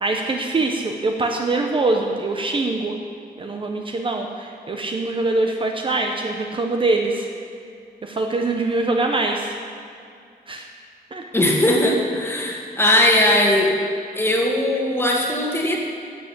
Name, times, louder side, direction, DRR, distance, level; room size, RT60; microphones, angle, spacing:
voice 1, 0.0-3.0 3.4-7.3 8.0-9.5 10.5-10.7 11.1-11.2, right 2 dB, 30° right, 2 dB, 0.7 m, -23 dB
voice 2, 11.3-13.7 14.2-15.8, left 1 dB, 15° left, 0 dB, 1.5 m, -19 dB
11.0 x 7.4 x 7.8 m, 2.3 s
wide cardioid pair, 180°, 16 cm